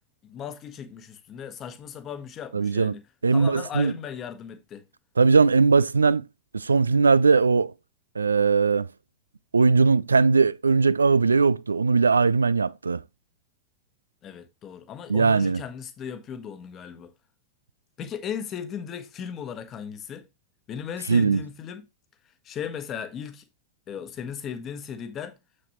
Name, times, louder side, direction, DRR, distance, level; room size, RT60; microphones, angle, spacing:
voice 1, 0.2-3.0 3.3-4.9 14.2-17.1 18.0-20.3 20.7-21.8 22.4-23.4 23.9-25.4, left 8 dB, 30° left, 1.3 m, -37 dB
voice 2, 2.5-2.9 3.2-3.9 5.2-6.3 6.5-7.7 8.2-8.9 9.5-13.0 15.1-15.6 21.1-21.4, right 4 dB, 75° right, 0.3 m, -20 dB
7.3 x 6.5 x 3.0 m
figure-of-eight pair, 90°, 0 cm